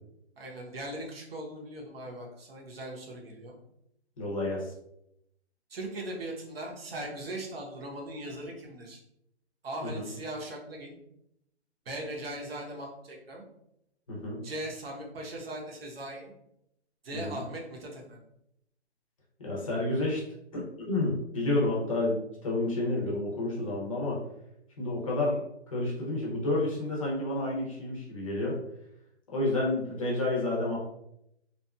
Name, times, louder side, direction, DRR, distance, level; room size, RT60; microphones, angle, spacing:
voice 1, 0.4-3.6 5.7-9.0 9.6-10.9 11.9-13.4 14.4-16.3 17.0-18.2, right 1 dB, 55° right, -1 dB, 0.8 m, -39 dB
voice 2, 4.2-4.7 9.8-10.1 14.1-14.4 17.1-17.4 19.4-20.2 20.5-24.2 24.8-28.6 29.3-30.8, left 2 dB, 30° left, -4 dB, 0.6 m, -30 dB
2.8 x 2.4 x 2.2 m, 0.79 s
hypercardioid pair, 160°, 34 cm